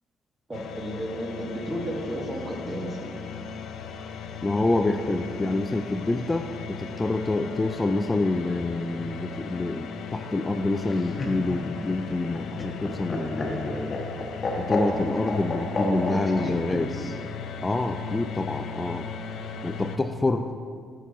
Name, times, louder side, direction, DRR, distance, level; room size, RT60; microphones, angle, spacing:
sound 1, 0.5-20.0, left 6 dB, 75° left, 0.5 m, -37 dB
voice 1, 0.5-3.1 15.8-16.9, right 1 dB, 30° right, 0 dB, 1.4 m, -33 dB
voice 2, 4.4-14.0 14.5-17.1 17.6-19.1 19.6-20.4, left 2 dB, 20° left, 7 dB, 0.3 m, -27 dB
Laughter, 10.8-16.5 17.7-18.4, left 2 dB, 35° left, 1.1 m, -31 dB
7.1 x 6.0 x 4.0 m, 2.1 s
cardioid pair, 90°, 0 cm